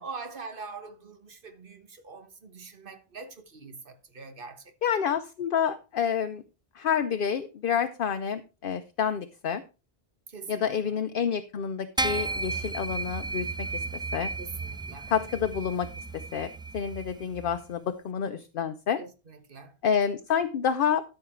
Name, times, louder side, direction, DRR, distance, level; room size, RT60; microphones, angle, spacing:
voice 1, 0.0-4.7 10.3-10.9 14.4-15.1 19.0-19.7, right 4 dB, 60° right, 1.5 m, -43 dB
voice 2, 4.8-6.4 6.7-9.6 10.5-13.5 13.7-13.8 14.1-14.3 15.1-15.9 16.3-19.0 19.8-21.0, left 7 dB, 65° left, 0.8 m, -28 dB
sound 1, 12.0-17.6, right 3 dB, 5° right, 0.4 m, -34 dB
13.0 x 5.6 x 4.4 m
omnidirectional pair, 1.0 m